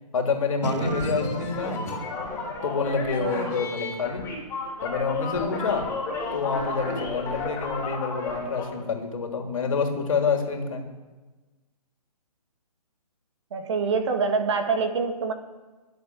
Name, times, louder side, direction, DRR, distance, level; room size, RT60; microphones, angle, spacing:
voice 1, 0.1-1.8 2.6-4.3 4.8-5.9 6.3-10.8, left 5 dB, 55° left, 3 dB, 3.4 m, -27 dB
sound 1, 0.6-8.7, left 3 dB, 10° left, 4.7 m, -32 dB
Boom, 0.6-4.0, right 4 dB, 85° right, 0.7 m, -36 dB
voice 2, 3.2-3.5 13.5-15.3, right 4 dB, 45° right, 7 dB, 1.9 m, -26 dB
22.5 x 8.1 x 6.3 m, 1.2 s
figure-of-eight pair, 135°, 21 cm